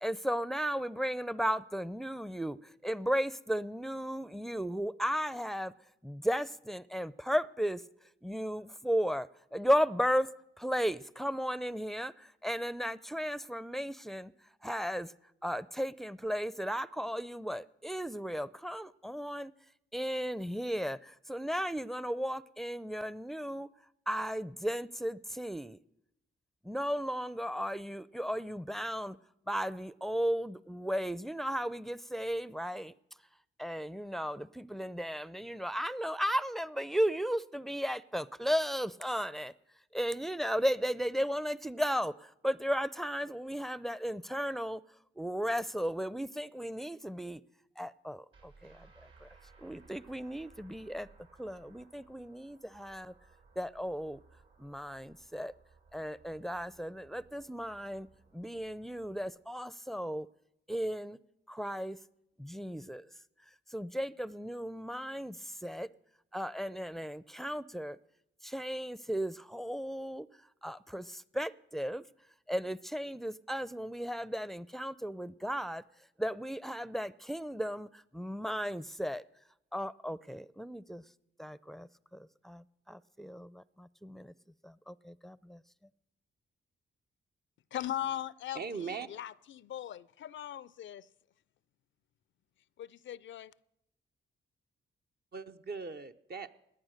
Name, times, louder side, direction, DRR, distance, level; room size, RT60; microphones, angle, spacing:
voice 1, 0.0-5.7 6.0-7.8 8.2-10.3 10.6-14.3 14.6-15.1 15.4-19.5 19.9-23.7 24.1-25.8 26.6-29.2 29.5-32.9 33.6-39.5 39.9-44.8 45.2-47.4 47.8-49.3 49.6-51.1 51.4-53.1 53.6-54.2 54.6-55.5 55.9-58.1 58.3-60.3 60.7-61.2 61.5-62.0 62.4-63.1 63.7-65.9 66.3-68.0 68.4-70.3 70.6-72.0 72.5-75.8 76.2-79.2 79.7-81.0 81.4-84.3 84.6-85.6, equal, ahead, 0.5 m, -35 dB
sound 1, 48.3-59.3, right 4 dB, 70° right, 4.4 m, -61 dB
voice 2, 87.7-91.1 92.8-93.5, left 11 dB, 65° left, 0.5 m, -39 dB
voice 3, 88.5-89.1 95.3-96.5, right 5 dB, 50° right, 0.8 m, -39 dB
18.0 x 10.0 x 6.5 m
supercardioid pair, 50°, 21 cm